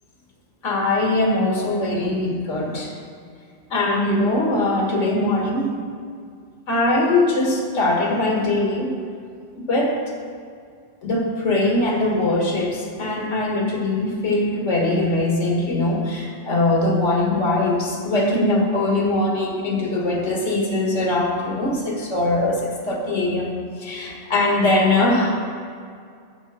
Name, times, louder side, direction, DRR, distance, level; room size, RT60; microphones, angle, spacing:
voice 1, 0.6-2.9 3.7-5.7 6.7-9.0 9.6-10.0 11.0-25.4, left 2 dB, 80° left, 0 dB, 1.8 m, -21 dB
9.0 x 7.6 x 6.2 m, 2.2 s
omnidirectional pair, 1.2 m